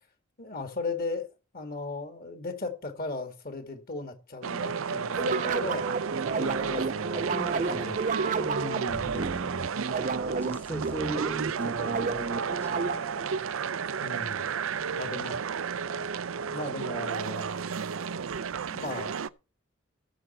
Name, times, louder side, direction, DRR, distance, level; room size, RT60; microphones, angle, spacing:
voice 1, 0.4-1.3 1.5-5.9 6.4-7.3 7.7-8.0 8.3-9.1 14.0-14.5 15.0-15.5 16.5-18.0 18.7-19.3, left 3 dB, 45° left, 2.2 m, -37 dB
sound 1, 4.4-19.3, right 6 dB, 80° right, 0.5 m, -32 dB
sound 2, 5.2-13.3, right 4 dB, 40° right, 0.5 m, -32 dB
voice 2, 7.3-8.1 8.3-8.5 9.1-9.5 10.2-13.4, equal, 10° left, 0.9 m, -41 dB
17.5 x 7.1 x 4.5 m
head